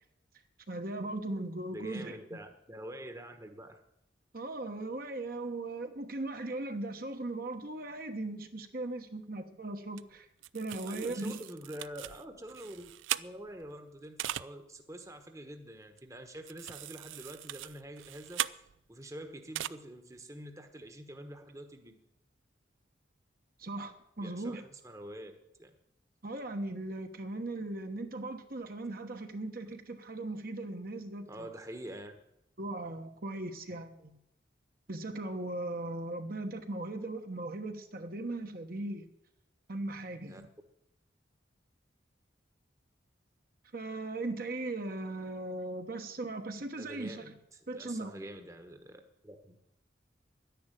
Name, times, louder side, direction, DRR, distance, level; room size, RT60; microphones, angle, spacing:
voice 1, 0.7-2.2 4.3-10.3 10.5-11.4 23.6-24.6 26.2-31.5 32.6-34.1 34.9-39.1 39.7-40.5 43.7-47.3 47.7-48.1, right 2 dB, 50° right, 6 dB, 1.2 m, -38 dB
voice 2, 1.7-3.8 10.8-18.4 18.9-22.0 24.2-25.7 31.3-32.2 40.3-40.4 46.7-49.6, right 1 dB, 15° right, 6 dB, 1.1 m, -46 dB
sound 1, 10.0-10.1 10.4-13.7 14.2-14.5 16.0-16.1 16.4-19.0 19.5-19.7, right 12 dB, 90° right, 0.4 m, -39 dB
11.0 x 10.5 x 9.1 m, 0.81 s
head